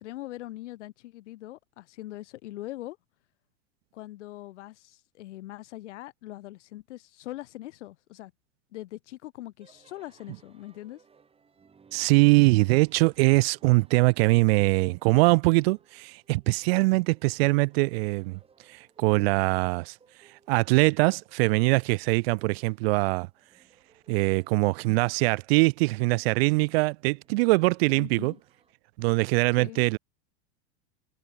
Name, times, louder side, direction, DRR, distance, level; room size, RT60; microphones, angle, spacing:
voice 1, 0.0-3.0 3.9-8.3 8.7-11.0 27.9-28.4 29.6-29.9, left 16 dB, 85° left, 1.3 m, -42 dB
sound 1, 9.6-28.7, right 5 dB, 15° right, 5.6 m, -63 dB
voice 2, 11.9-18.4 18.7-19.9 20.5-23.3 24.1-28.3 29.0-30.0, right 25 dB, 60° right, 0.5 m, -22 dB
supercardioid pair, 135°, 35 cm